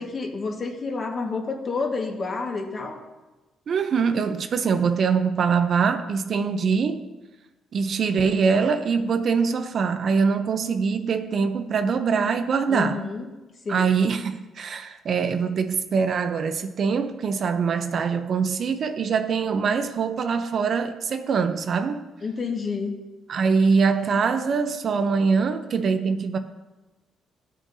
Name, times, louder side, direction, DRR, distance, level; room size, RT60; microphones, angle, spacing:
voice 1, 0.0-3.0 12.7-13.3 13.6-13.9 22.2-22.9, left 4 dB, 40° left, 1.5 m, -29 dB
voice 2, 3.7-7.1 7.7-13.0 13.7-22.1 23.3-26.4, right 5 dB, 55° right, 0.6 m, -23 dB
14.5 x 6.3 x 2.7 m
cardioid pair, 90°, 0 cm